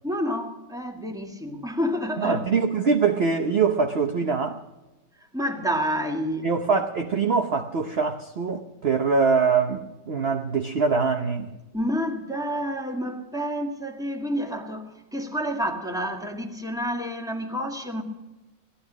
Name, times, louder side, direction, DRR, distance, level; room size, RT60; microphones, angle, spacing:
voice 1, 0.0-2.6 5.2-6.5 11.7-18.0, equal, ahead, 1.7 m, -29 dB
voice 2, 2.2-4.6 6.4-11.5, right 5 dB, 50° right, 0.7 m, -23 dB
18.0 x 13.0 x 6.2 m
omnidirectional pair, 2.1 m